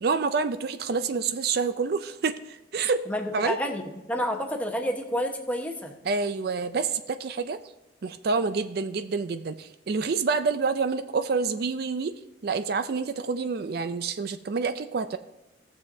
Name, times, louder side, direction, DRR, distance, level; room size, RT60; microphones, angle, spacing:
voice 1, 0.0-3.0 3.3-3.6 6.0-7.6 8.0-12.1 12.4-15.2, right 4 dB, 60° right, 11 dB, 0.4 m, -27 dB
voice 2, 3.1-3.8 4.1-5.9, equal, 10° left, 2 dB, 1.1 m, -29 dB
18.0 x 7.0 x 2.7 m, 0.99 s
head